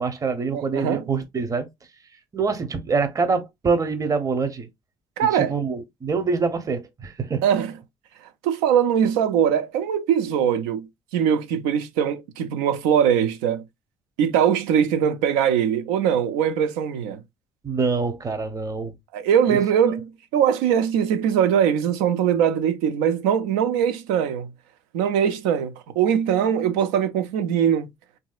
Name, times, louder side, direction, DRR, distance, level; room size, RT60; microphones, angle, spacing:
voice 1, 0.0-1.7 2.3-4.7 5.3-7.4 17.6-18.9 19.5-19.6, right 4 dB, 30° right, 0.7 m, -25 dB
voice 2, 0.5-1.0 5.2-5.5 7.4-7.7 8.4-13.6 14.2-17.2 19.1-24.5 24.9-27.9, right 8 dB, 85° right, 0.5 m, -21 dB
3.2 x 2.7 x 2.3 m
supercardioid pair, 65°, 11 cm